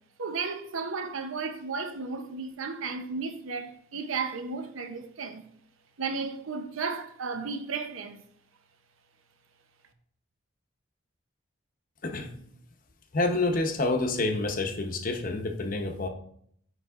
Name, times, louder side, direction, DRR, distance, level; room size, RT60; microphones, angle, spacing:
voice 1, 0.2-5.4 6.0-8.2, right 4 dB, 75° right, 0.7 m, -34 dB
voice 2, 13.1-16.1, left 2 dB, 40° left, 0.7 m, -28 dB
9.2 x 3.3 x 3.6 m
head